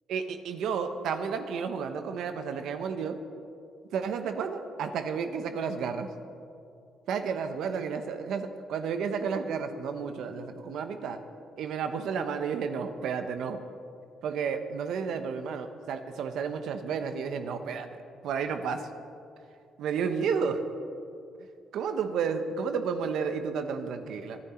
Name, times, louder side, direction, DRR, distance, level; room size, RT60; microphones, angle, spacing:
voice 1, 0.1-3.2 3.9-6.1 7.1-11.2 11.6-13.6 14.2-18.9 19.8-20.6 21.7-24.4, right 6 dB, 75° right, 8 dB, 1.1 m, -32 dB
24.0 x 11.0 x 4.5 m, 2.5 s
cardioid pair, 90°, 0 cm